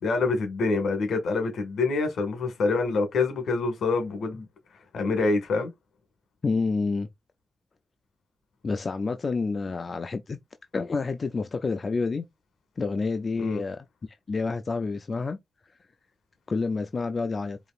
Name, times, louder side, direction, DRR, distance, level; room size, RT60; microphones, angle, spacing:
voice 1, 0.0-4.4 4.9-5.7 13.4-13.6, left 3 dB, 85° left, 1.7 m, -26 dB
voice 2, 6.4-7.1 8.6-10.4 10.7-12.3 12.8-13.9 14.3-15.4 16.5-17.6, left 4 dB, 40° left, 0.5 m, -28 dB
4.9 x 2.9 x 2.4 m
cardioid pair, 95°, 0 cm